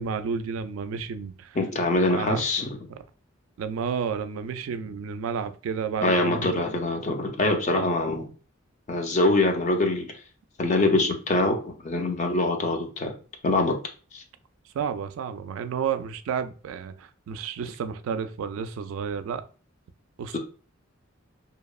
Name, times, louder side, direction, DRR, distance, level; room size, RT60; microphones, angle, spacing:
voice 1, 0.0-1.6 1.9-2.4 2.9-3.0 3.6-6.6 7.7-7.9 14.7-19.4 20.2-20.4, right 6 dB, 85° right, 0.3 m, -31 dB
voice 2, 1.6-2.8 6.0-8.3 8.9-10.1 10.6-13.1 13.4-13.8 14.1-14.2 20.3-20.4, left 2 dB, 35° left, 0.5 m, -24 dB
2.8 x 2.0 x 2.3 m
head